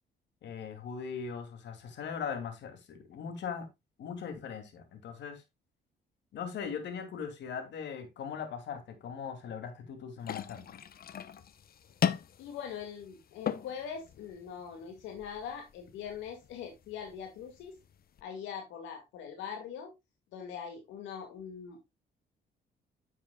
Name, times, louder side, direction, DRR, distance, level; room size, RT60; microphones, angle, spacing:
voice 1, 0.4-3.7 4.0-5.4 6.3-10.7, left 6 dB, 70° left, 2.6 m, -40 dB
sound 1, 10.2-18.2, left 8 dB, 55° left, 0.9 m, -39 dB
voice 2, 12.4-17.8 18.2-19.9 20.3-21.8, left 7 dB, 90° left, 2.1 m, -42 dB
10.0 x 7.3 x 2.3 m
cardioid pair, 85°, 19 cm